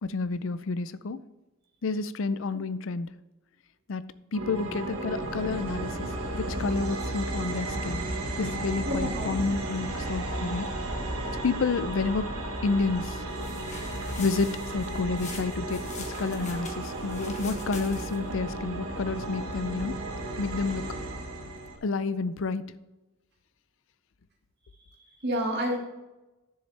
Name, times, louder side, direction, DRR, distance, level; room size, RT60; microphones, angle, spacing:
voice 1, 0.0-1.2 1.8-3.1 3.9-4.1 4.3-8.0 8.4-10.7 11.4-12.3 12.6-13.2 13.9-19.9 20.4-21.0 21.8-22.7, left 4 dB, 65° left, 14 dB, 0.4 m, -30 dB
sound 1, 4.3-21.8, right 2 dB, 80° right, 1.2 m, -34 dB
voice 2, 8.9-9.3 25.2-25.8, equal, 50° right, 1 dB, 1.8 m, -29 dB
sound 2, 13.3-18.3, left 4 dB, 30° left, 1.2 m, -44 dB
10.5 x 7.1 x 3.3 m, 1.0 s
head